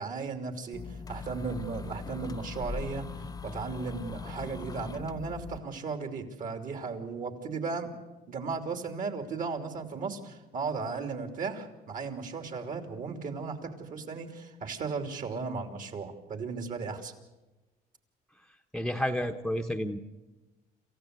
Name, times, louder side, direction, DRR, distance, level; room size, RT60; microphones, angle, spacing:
voice 1, 0.0-3.1 3.4-7.9 8.3-17.1, right 4 dB, 50° right, 6 dB, 3.1 m, -36 dB
sound 1, 0.7-5.6, left 5 dB, 20° left, 0.7 m, -40 dB
voice 2, 18.7-20.0, equal, 5° left, 5 dB, 1.1 m, -30 dB
27.5 x 15.0 x 8.3 m, 1.1 s
cardioid pair, 110°, 17 cm